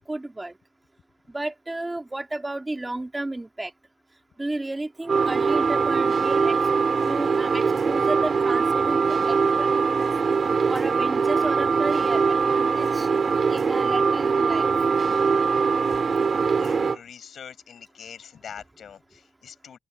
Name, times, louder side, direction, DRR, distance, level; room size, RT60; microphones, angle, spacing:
voice 1, 0.1-0.5 1.3-3.7 4.4-6.5 7.0-10.1 10.7-13.1 13.5-14.7, right 2 dB, 15° right, 2.8 m, -33 dB
sound 1, 5.1-17.0, right 5 dB, 40° right, 2.2 m, -22 dB
voice 2, 16.6-19.8, left 7 dB, 55° left, 7.8 m, -43 dB
open air
cardioid pair, 90°, 0 cm